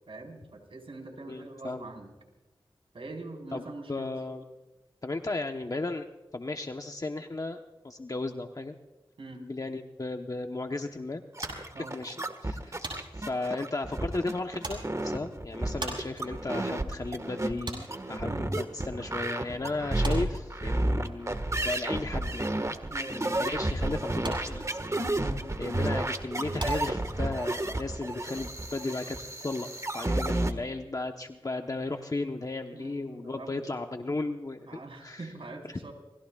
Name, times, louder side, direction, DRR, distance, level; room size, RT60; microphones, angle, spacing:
voice 1, 0.1-2.1 2.9-4.1 9.2-9.4 11.7-12.0 18.2-18.5 20.8-21.1 22.9-23.2 25.2-25.5 32.7-33.7 34.7-35.9, right 2 dB, 80° right, 2 dB, 4.4 m, -43 dB
voice 2, 1.3-1.9 3.5-4.4 5.0-6.1 6.3-7.6 7.8-8.7 9.4-11.2 11.9-12.2 12.4-12.7 13.1-21.4 21.6-22.5 23.1-24.8 25.6-29.7 29.9-34.7 35.0-35.3 35.7-35.8, left 2 dB, 40° left, 5 dB, 1.0 m, -35 dB
sound 1, 11.4-30.5, right 1 dB, 35° right, 1.6 m, -31 dB
sound 2, 11.4-19.3 19.5-27.6, right 1 dB, 60° right, 7.8 m, -41 dB
28.0 x 20.5 x 2.4 m, 1.1 s
wide cardioid pair, 55°, 9 cm